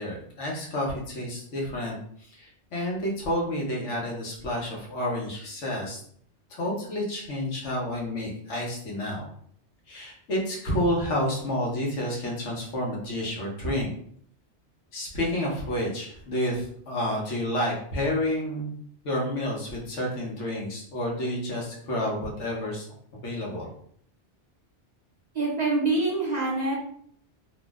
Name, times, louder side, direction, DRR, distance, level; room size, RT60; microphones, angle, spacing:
voice 1, 0.0-6.0 6.5-9.3 9.9-13.9 14.9-18.7 19.0-22.8 23.2-23.7, left 1 dB, 85° left, -2 dB, 1.2 m, -30 dB
voice 2, 25.3-26.8, right 3 dB, 45° right, -3 dB, 0.6 m, -25 dB
2.9 x 2.0 x 3.4 m, 0.63 s
omnidirectional pair, 1.2 m